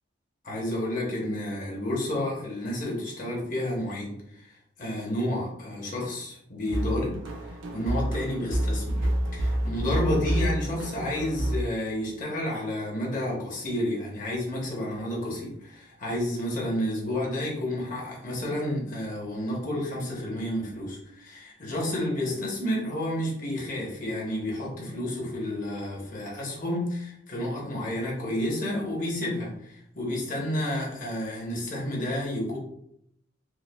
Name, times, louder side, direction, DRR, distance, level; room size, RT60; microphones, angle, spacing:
voice 1, 0.4-7.1 7.5-9.0 9.3-32.6, left 1 dB, 45° left, -3 dB, 1.0 m, -30 dB
sound 1, 6.7-11.6, right 1 dB, 90° right, 0.6 m, -28 dB
4.7 x 2.1 x 2.2 m, 0.75 s
head